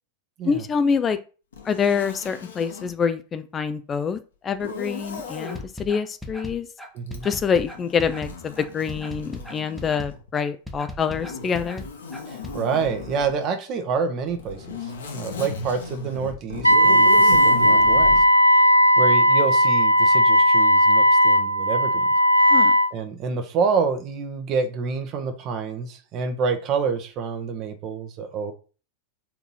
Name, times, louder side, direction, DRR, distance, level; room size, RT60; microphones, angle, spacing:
voice 1, 0.4-1.2 1.6-6.7 7.2-11.8 22.5-22.7, left 6 dB, 25° left, 0.5 m, -26 dB
Zipper (clothing), 1.5-2.9 4.5-5.6 7.1-10.3 11.1-13.3 14.3-18.3, left 4 dB, 65° left, 1.4 m, -35 dB
sound 1, 5.4-12.6, left 1 dB, ahead, 1.1 m, -37 dB
voice 2, 6.9-7.3 12.3-18.2 18.5-18.6 19.0-22.1 22.9-28.5, right 5 dB, 35° right, 1.2 m, -28 dB
Wind instrument woodwind instrument, 16.6-22.9, equal, 90° right, 0.4 m, -16 dB
4.5 x 4.0 x 5.5 m
figure-of-eight pair, 90°, 0 cm